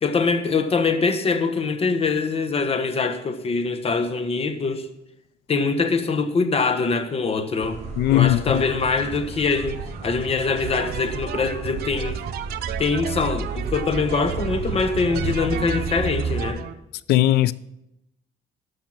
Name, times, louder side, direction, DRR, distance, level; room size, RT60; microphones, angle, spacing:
voice 1, 0.0-4.9 5.5-7.8 8.1-12.2 12.8-16.6, left 4 dB, 35° left, 1.3 m, -23 dB
sound 1, 7.6-16.5, right 4 dB, 40° right, 4.1 m, -32 dB
voice 2, 8.0-8.6 17.1-17.5, left 14 dB, 75° left, 0.5 m, -18 dB
sound 2, 8.5-16.7, right 11 dB, 70° right, 0.7 m, -34 dB
13.5 x 5.7 x 6.0 m
cardioid pair, 110°, 17 cm